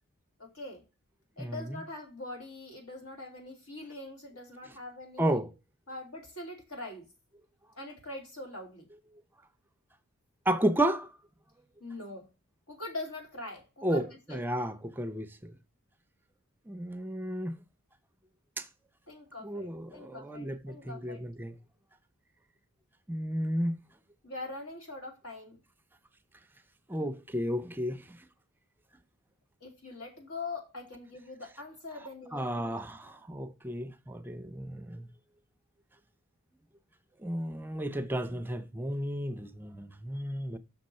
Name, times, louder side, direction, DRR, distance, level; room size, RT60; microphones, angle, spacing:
voice 1, 0.4-0.8 1.4-5.4 5.9-7.1 7.7-8.9 11.8-12.3 12.7-14.4 19.1-21.2 24.2-25.6 29.6-32.8, left 2 dB, 80° left, 2.5 m, -43 dB
voice 2, 5.2-5.5 10.5-11.1 13.8-15.5 16.7-17.6 18.6-18.7 19.4-21.6 23.1-23.8 26.9-28.2 32.3-35.1 37.2-40.6, right 1 dB, 10° right, 0.4 m, -32 dB
6.3 x 6.1 x 4.2 m
head